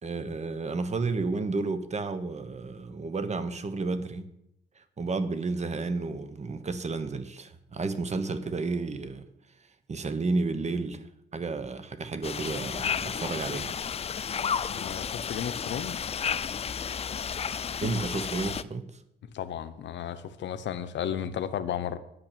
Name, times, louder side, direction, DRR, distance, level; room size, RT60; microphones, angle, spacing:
voice 1, 0.0-4.3 4.8-9.2 9.9-11.0 11.3-13.7 17.5-18.9, right 3 dB, 35° right, 1.1 m, -32 dB
sound 1, 12.2-18.6, left 7 dB, 30° left, 0.4 m, -32 dB
voice 2, 14.7-16.0 19.3-22.0, left 9 dB, 65° left, 0.7 m, -34 dB
9.6 x 5.9 x 6.9 m
cardioid pair, 90°, 20 cm